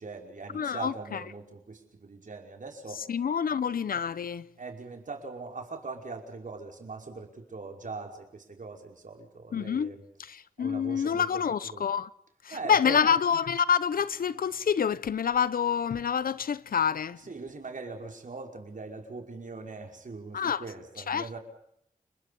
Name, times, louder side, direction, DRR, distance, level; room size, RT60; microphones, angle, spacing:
voice 1, 0.0-3.0 3.5-3.6 4.6-10.0 10.6-11.4 11.7-11.8 12.5-13.0 17.3-21.4, right 4 dB, 65° right, 5.4 m, -41 dB
voice 2, 0.5-1.2 3.1-4.4 9.5-12.1 12.4-17.2 20.3-20.7 21.1-21.4, left 7 dB, 85° left, 0.9 m, -27 dB
30.0 x 21.5 x 5.5 m
cardioid pair, 50°, 15 cm